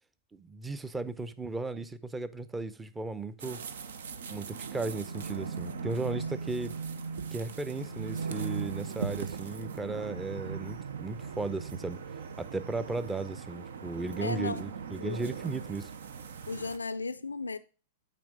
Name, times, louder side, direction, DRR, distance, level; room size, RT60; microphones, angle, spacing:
voice 1, 0.3-3.6 4.3-6.7 7.3-12.0 12.4-15.9, right 3 dB, 15° right, 0.6 m, -36 dB
sound 1, 3.4-16.8, right 5 dB, 70° right, 0.6 m, -39 dB
voice 2, 14.2-14.6 15.0-15.3 16.5-17.6, left 3 dB, 90° left, 0.4 m, -35 dB
8.6 x 3.1 x 6.5 m
hypercardioid pair, 105°, 0 cm